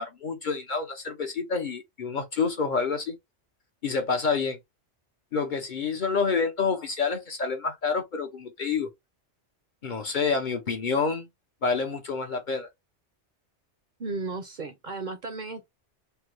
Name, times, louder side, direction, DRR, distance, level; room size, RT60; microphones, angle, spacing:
voice 1, 0.0-3.2 3.8-4.6 5.3-8.9 9.8-11.3 11.6-12.7, left 5 dB, 50° left, 0.7 m, -28 dB
voice 2, 14.0-15.7, right 3 dB, 50° right, 0.6 m, -34 dB
3.3 x 2.1 x 3.0 m
omnidirectional pair, 1.2 m